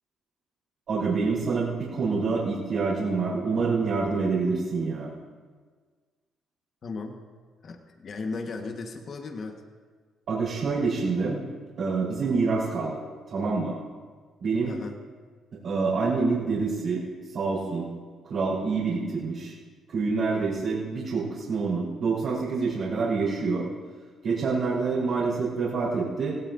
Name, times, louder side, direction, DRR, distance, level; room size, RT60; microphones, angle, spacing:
voice 1, 0.9-5.1 10.3-11.5 11.8-13.0 13.3-13.8 14.4-14.7 15.6-17.0 17.3-17.9 18.3-19.5 19.9-23.6 24.2-26.4, right 4 dB, 65° right, -9 dB, 4.3 m, -26 dB
voice 2, 6.8-7.2 7.6-9.6 14.6-14.9, left 3 dB, 50° left, 3 dB, 1.4 m, -36 dB
17.5 x 17.0 x 2.7 m, 1.5 s
cardioid pair, 90°, 0 cm